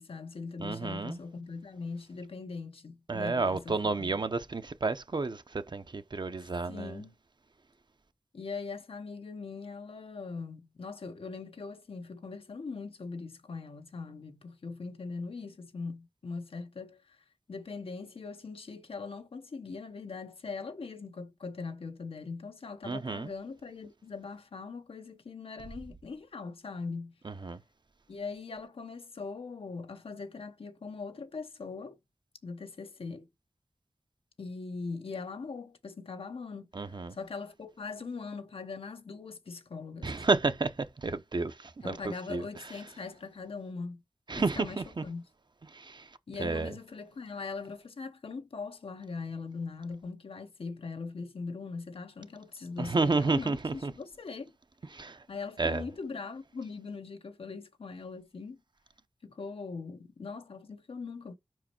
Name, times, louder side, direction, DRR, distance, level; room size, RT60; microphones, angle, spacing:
voice 1, 0.0-4.2 6.7-7.1 8.3-17.2 17.5-27.1 28.1-32.0 32.4-33.3 34.4-40.2 41.8-44.0 44.3-45.2 46.3-54.5 55.3-58.6 59.2-61.3, left 4 dB, 90° left, 0.9 m, -41 dB
voice 2, 0.6-1.2 3.1-5.4 5.7-6.9 22.9-23.3 27.4-27.6 36.7-37.1 40.0-40.7 41.0-41.5 41.8-42.0 42.3-42.4 44.3-45.0 45.8-46.0 46.4-46.7 52.8-53.9 54.9-55.2 55.6-55.8, right 3 dB, 55° right, 0.7 m, -30 dB
5.3 x 4.7 x 4.4 m
wide cardioid pair, 70°, 9 cm